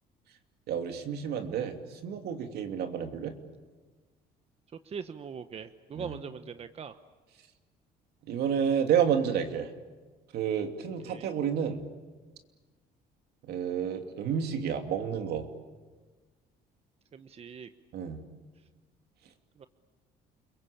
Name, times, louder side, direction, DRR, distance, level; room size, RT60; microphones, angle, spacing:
voice 1, 0.7-3.3 5.9-6.2 8.3-9.7 10.3-11.8 13.4-15.5 17.9-18.2, right 8 dB, 70° right, 6 dB, 2.9 m, -30 dB
voice 2, 4.8-7.0 11.0-11.3 17.1-17.7 19.6-19.7, right 6 dB, 35° right, 10 dB, 1.1 m, -41 dB
29.5 x 22.0 x 8.6 m, 1.3 s
cardioid pair, 110°, 17 cm